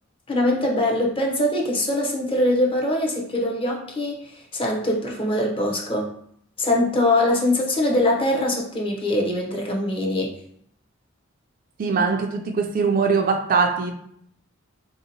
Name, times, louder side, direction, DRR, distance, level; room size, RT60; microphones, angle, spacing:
voice 1, 0.3-6.1 6.6-10.3, left 1 dB, 25° left, -1 dB, 0.7 m, -22 dB
voice 2, 11.8-13.9, right 5 dB, 45° right, 3 dB, 0.4 m, -21 dB
3.8 x 2.7 x 2.8 m, 0.68 s
head